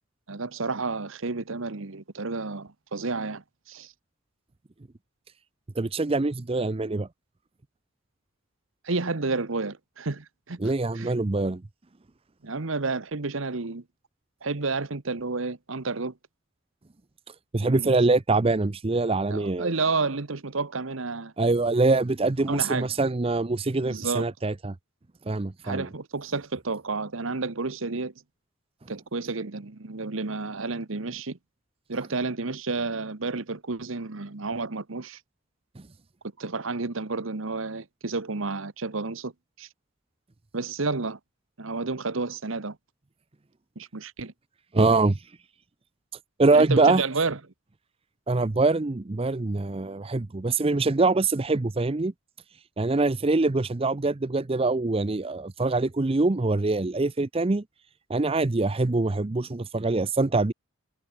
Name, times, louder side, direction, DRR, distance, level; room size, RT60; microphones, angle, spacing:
voice 1, 0.3-3.9 8.8-11.1 12.4-13.8 14.4-16.1 17.6-18.0 19.3-21.3 22.5-22.9 23.8-24.3 25.6-28.1 28.9-31.4 31.9-35.2 36.4-39.3 39.6-39.7 40.5-41.2 41.6-42.8 43.8-44.3 46.5-47.4, right 3 dB, 70° right, 1.2 m, -31 dB
voice 2, 5.8-7.1 10.6-11.6 17.5-19.7 21.4-24.7 25.3-25.9 44.7-45.2 46.4-47.0 48.3-52.1 52.8-57.6 58.1-60.5, right 3 dB, 25° right, 0.6 m, -24 dB
head